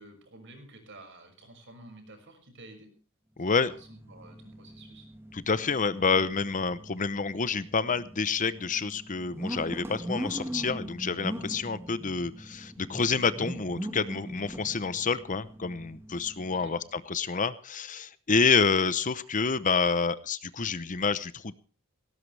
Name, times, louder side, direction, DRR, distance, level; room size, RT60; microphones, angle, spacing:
voice 1, 0.0-2.9 3.4-5.1 16.4-16.8, right 2 dB, 55° right, 6 dB, 6.1 m, -51 dB
voice 2, 3.4-3.7 5.3-21.5, left 5 dB, 35° left, 15 dB, 0.8 m, -28 dB
sound 1, 3.7-16.8, equal, 10° right, 1.8 m, -41 dB
18.0 x 17.5 x 3.4 m, 0.36 s
head